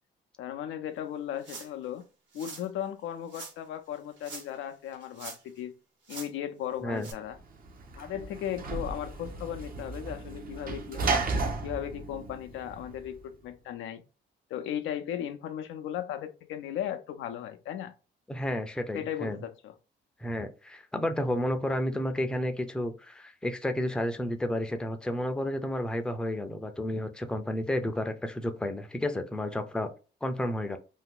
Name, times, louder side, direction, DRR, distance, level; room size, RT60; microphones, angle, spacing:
voice 1, 0.4-2.0 2.3-5.7 6.1-7.4 8.0-11.3 11.6-14.0 14.5-17.9 18.9-19.7, left 10 dB, 85° left, 0.5 m, -36 dB
sound 1, 1.4-1.8 2.3-2.7 3.3-3.5 4.2-4.6 4.9-5.6 6.0-6.3 7.0-7.1, right 4 dB, 65° right, 1.2 m, -44 dB
Sliding door / Slam, 7.3-13.2, right 3 dB, 45° right, 0.6 m, -34 dB
voice 2, 18.3-19.4 20.2-29.9 30.2-30.8, left 1 dB, 5° left, 0.5 m, -31 dB
2.7 x 2.3 x 3.7 m
cardioid pair, 90°, 20 cm